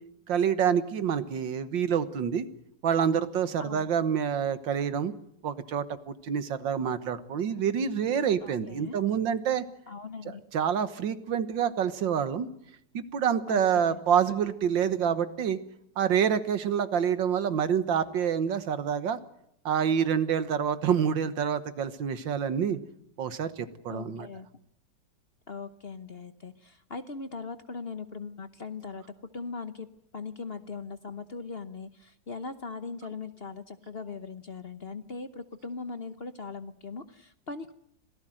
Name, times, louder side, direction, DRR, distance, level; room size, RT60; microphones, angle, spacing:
voice 1, 0.3-2.5 2.8-5.1 5.4-9.6 10.3-12.5 12.9-15.6 16.0-19.2 19.7-22.8 23.2-24.3, right 8 dB, 85° right, 13 dB, 2.0 m, -27 dB
voice 2, 3.6-4.0 8.4-9.0 9.9-10.4 13.5-14.0 23.9-24.5 25.5-29.0 29.3-29.9 30.1-37.7, left 4 dB, 40° left, 11 dB, 1.0 m, -40 dB
26.0 x 17.5 x 7.7 m, 0.76 s
omnidirectional pair, 2.0 m